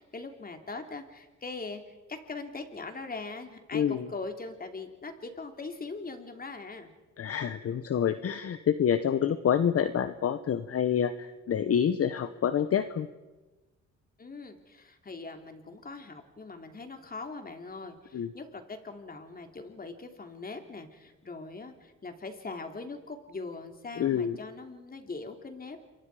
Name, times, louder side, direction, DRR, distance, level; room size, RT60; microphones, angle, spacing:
voice 1, 0.0-1.8 2.1-6.9 14.2-25.9, left 3 dB, 30° left, 5 dB, 3.2 m, -41 dB
voice 2, 3.7-4.1 7.2-13.1 18.1-18.3 24.0-24.4, left 8 dB, 50° left, 11 dB, 1.1 m, -27 dB
28.0 x 23.5 x 5.0 m, 1.2 s
cardioid pair, 90°, 30 cm